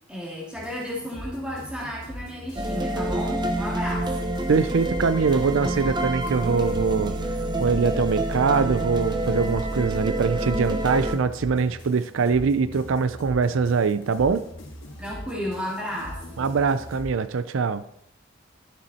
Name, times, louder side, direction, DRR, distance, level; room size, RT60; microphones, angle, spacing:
voice 1, 0.1-4.3 15.0-16.4, equal, 5° right, -5 dB, 2.4 m, -33 dB
sound 1, 0.6-17.1, equal, 60° left, 2.2 m, -41 dB
sound 2, 2.6-11.2, right 1 dB, 20° right, 0.7 m, -27 dB
voice 2, 4.5-7.1 7.6-14.5 16.4-17.8, right 5 dB, 65° right, 14 dB, 0.4 m, -23 dB
12.5 x 7.1 x 4.2 m, 0.74 s
head